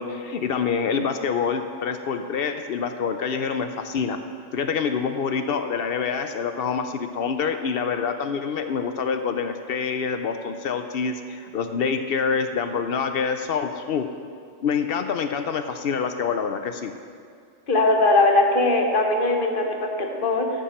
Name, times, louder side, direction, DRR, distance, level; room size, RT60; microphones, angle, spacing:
voice 1, 0.0-4.2 4.5-14.1 14.6-16.9, left 6 dB, 60° left, 8 dB, 0.6 m, -26 dB
voice 2, 17.7-20.5, left 2 dB, 45° left, 3 dB, 1.1 m, -20 dB
13.0 x 7.0 x 4.3 m, 2.3 s
omnidirectional pair, 1.4 m